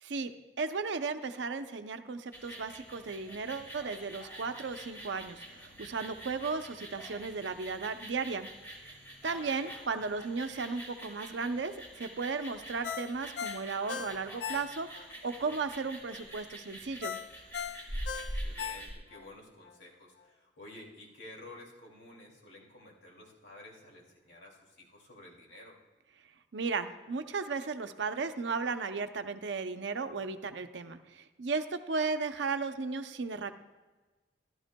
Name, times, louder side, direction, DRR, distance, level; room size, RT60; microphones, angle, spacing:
voice 1, 0.0-8.5 9.2-14.9 15.2-17.2 26.5-33.5, right 4 dB, 75° right, 8 dB, 0.6 m, -35 dB
sound 1, 2.3-18.9, right 1 dB, 15° left, 2.0 m, -45 dB
voice 2, 9.2-9.7 18.2-25.8, left 1 dB, 80° left, -1 dB, 2.4 m, -52 dB
Ringtone, 12.8-15.1 15.5-15.6 17.0-19.3 19.7-19.8, left 7 dB, 60° left, 0.4 m, -38 dB
13.5 x 12.0 x 2.2 m, 1.3 s
head